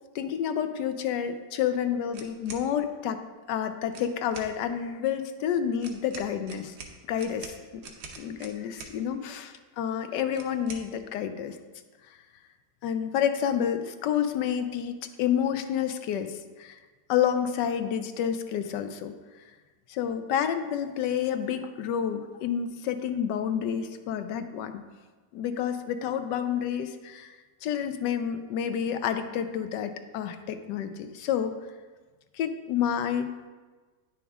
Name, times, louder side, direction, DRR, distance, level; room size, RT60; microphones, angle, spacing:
voice 1, 0.1-3.2 3.5-6.7 7.1-7.8 8.2-11.6 12.8-16.8 17.1-19.1 19.9-24.7 25.3-27.3 27.6-31.5 32.3-33.3, left 9 dB, 85° left, 9 dB, 1.3 m, -29 dB
sound 1, 2.1-2.7 3.9-4.5 5.8-9.0 10.3-10.9, right 4 dB, 75° right, 1.4 m, -44 dB
9.4 x 6.0 x 3.5 m, 1.3 s
omnidirectional pair, 1.8 m